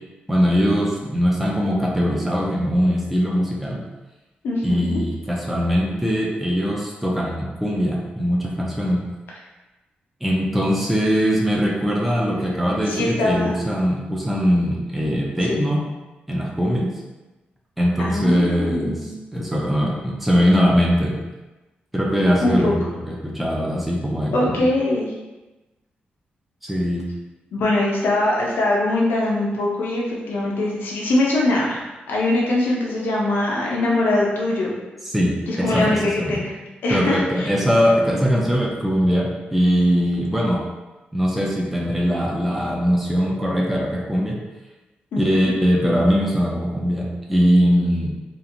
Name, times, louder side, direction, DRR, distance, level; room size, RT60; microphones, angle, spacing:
voice 1, 0.3-3.8 4.6-9.0 10.2-15.9 16.3-16.9 17.8-21.2 21.9-24.7 26.6-27.0 35.0-35.4 35.6-36.4 36.9-40.6 41.1-44.4 45.2-48.1, equal, ahead, -3 dB, 0.4 m, -21 dB
voice 2, 4.4-5.0 12.9-13.6 15.5-15.6 18.0-19.1 22.4-22.7 24.3-25.1 27.5-31.8 32.1-34.7 35.5-36.5 36.8-37.5 45.1-45.5, left 2 dB, 85° left, -3 dB, 0.5 m, -22 dB
2.9 x 2.4 x 2.5 m, 1.1 s
cardioid pair, 115°, 3 cm